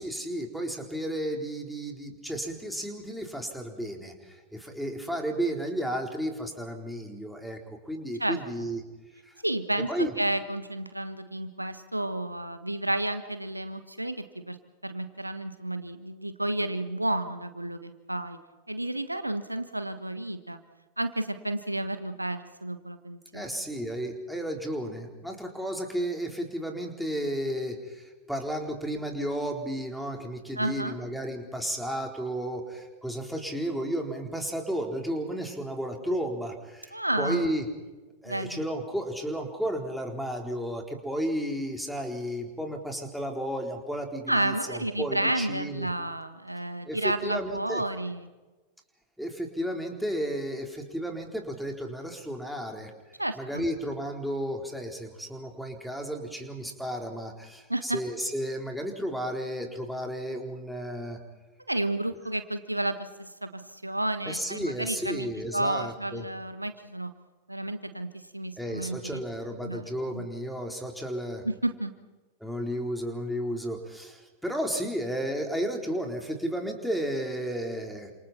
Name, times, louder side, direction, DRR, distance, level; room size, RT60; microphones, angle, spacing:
voice 1, 0.0-8.8 9.2-9.3 9.9-10.1 23.3-37.7 38.2-45.9 46.8-47.8 49.2-52.9 53.4-61.2 64.3-66.3 68.6-71.5 72.4-78.1, equal, ahead, 1 dB, 4.2 m, -33 dB
voice 2, 9.4-14.6 14.8-18.4 18.7-20.6 21.0-23.5 30.6-30.9 36.9-37.5 38.2-38.6 44.3-48.3 53.2-53.6 57.7-58.0 61.7-67.1 67.5-69.2 69.6-70.2 71.4-71.9, right 1 dB, 85° right, 10 dB, 1.4 m, -31 dB
29.5 x 27.5 x 4.4 m, 1.2 s
figure-of-eight pair, 90°, 0 cm